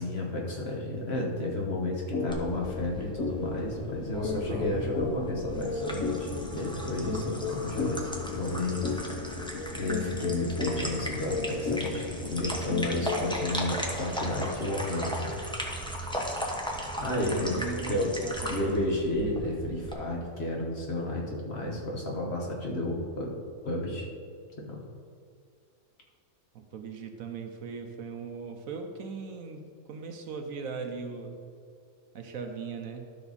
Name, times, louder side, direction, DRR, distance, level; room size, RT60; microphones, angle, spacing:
voice 1, 0.0-8.9 9.8-15.4 17.0-18.2 18.5-24.1 24.6-24.8, left 1 dB, 45° left, -2 dB, 1.5 m, -32 dB
sound 1, 2.1-2.3 2.7-2.8 3.2-13.4, left 4 dB, 70° left, 1.4 m, -34 dB
sound 2, 2.3-19.9, equal, 5° left, 0.8 m, -36 dB
sound 3, 5.9-13.3, left 7 dB, 90° left, 0.4 m, -44 dB
voice 2, 17.2-18.9 26.5-31.4 32.1-33.1, right 5 dB, 70° right, 5 dB, 1.2 m, -39 dB
12.5 x 5.8 x 4.1 m, 2.3 s
omnidirectional pair, 1.5 m